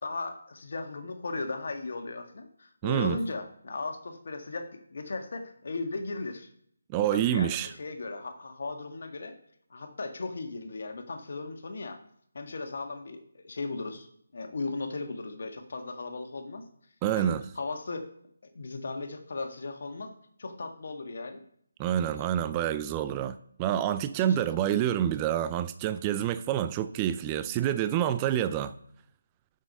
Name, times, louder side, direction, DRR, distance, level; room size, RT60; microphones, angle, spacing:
voice 1, 0.0-6.5 7.1-9.3 9.7-12.0 12.3-14.1 14.3-16.6 17.1-18.1 18.4-20.1 20.4-21.4 22.1-22.3 24.3-24.4, left 3 dB, 55° left, 1.7 m, -37 dB
voice 2, 2.8-3.2 6.9-7.7 17.0-17.4 21.8-28.7, right 10 dB, 20° right, 0.4 m, -27 dB
7.7 x 6.4 x 5.5 m
figure-of-eight pair, 155°, 0 cm